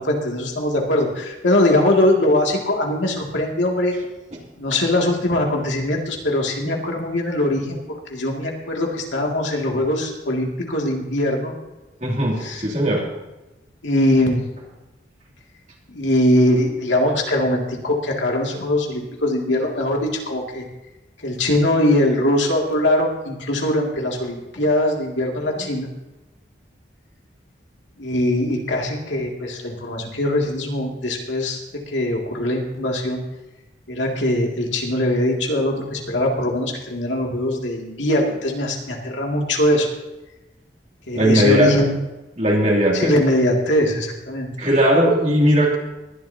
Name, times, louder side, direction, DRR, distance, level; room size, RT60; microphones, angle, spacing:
voice 1, 0.0-4.0 4.6-7.8 8.1-11.5 12.4-12.6 13.8-14.4 15.9-20.6 21.2-25.9 28.0-33.2 33.9-39.9 41.1-42.0 42.9-44.5, left 1 dB, 90° left, 0 dB, 2.5 m, -21 dB
voice 2, 12.0-13.0 25.6-25.7 41.1-41.8 42.4-43.1 44.6-45.8, right 1 dB, 40° right, -2 dB, 2.8 m, -18 dB
20.5 x 11.5 x 2.9 m, 1.0 s
head